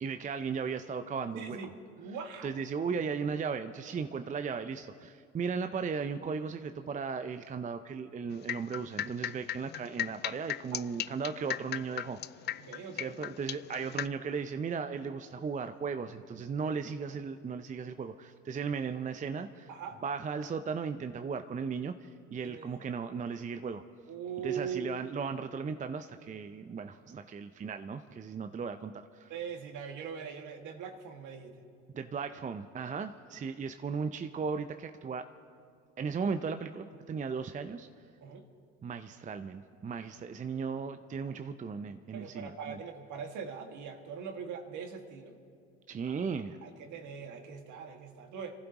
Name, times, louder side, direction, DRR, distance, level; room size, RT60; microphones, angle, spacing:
voice 1, 0.0-1.7 2.4-12.2 13.0-19.7 20.0-23.8 24.4-29.3 31.9-35.3 36.0-37.9 38.8-42.8 45.9-46.6, right 5 dB, 20° right, 9 dB, 0.6 m, -36 dB
voice 2, 1.4-1.7 2.0-2.5 10.7-10.8 12.6-13.2 19.7-20.0 22.4-22.8 24.1-24.9 29.3-31.6 38.2-38.5 42.1-45.4 46.0-46.2 46.6-48.6, right 6 dB, 55° right, 3 dB, 2.1 m, -41 dB
sound 1, 8.3-14.1, left 13 dB, 30° left, 0.3 m, -36 dB
27.0 x 15.0 x 3.0 m, 2.3 s
hypercardioid pair, 70°, 36 cm